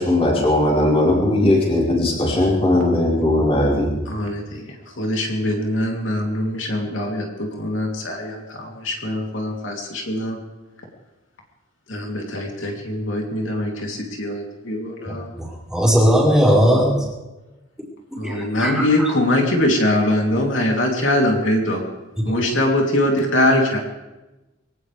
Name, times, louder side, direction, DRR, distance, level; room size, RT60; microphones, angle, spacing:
voice 1, 0.0-3.9, left 1 dB, 30° left, -4 dB, 5.0 m, -18 dB
voice 2, 4.1-4.6 5.0-10.4 11.9-15.3 18.1-21.8 22.2-23.8, left 1 dB, 70° left, 0 dB, 3.2 m, -22 dB
voice 3, 15.4-17.0 18.2-18.3 18.6-18.8, equal, 5° right, -6 dB, 4.9 m, -17 dB
23.0 x 18.0 x 3.5 m, 1.1 s
head